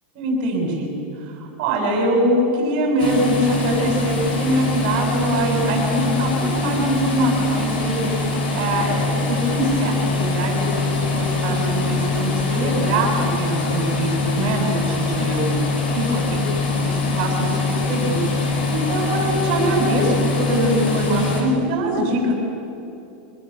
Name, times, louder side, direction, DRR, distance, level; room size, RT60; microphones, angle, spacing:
voice 1, 0.1-0.9 1.3-13.1 13.4-15.5 15.9-16.4 16.8-22.3, right 1 dB, 45° right, 0 dB, 7.7 m, -23 dB
sound 1, 3.0-21.4, left 3 dB, 80° left, 6.5 m, -23 dB
25.0 x 20.5 x 8.8 m, 2.8 s
supercardioid pair, 160°, 5 cm